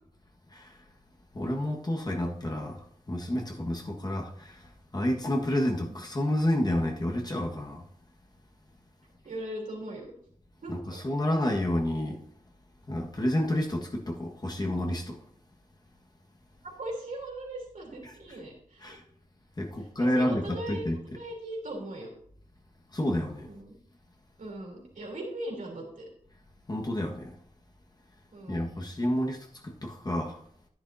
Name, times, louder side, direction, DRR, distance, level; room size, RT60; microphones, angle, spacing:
voice 1, 1.3-4.6 4.9-7.8 10.7-12.2 12.9-15.2 18.8-19.0 19.6-21.0 22.9-23.5 26.7-27.3 28.5-30.4, left 1 dB, 30° left, 1.6 m, -29 dB
voice 2, 9.2-10.1 10.6-11.0 16.6-19.0 20.0-20.9 21.2-22.1 23.5-23.8 24.4-26.1 28.3-28.7, right 1 dB, 80° right, 3.5 m, -39 dB
10.5 x 10.5 x 2.8 m
wide cardioid pair, 75°, 14 cm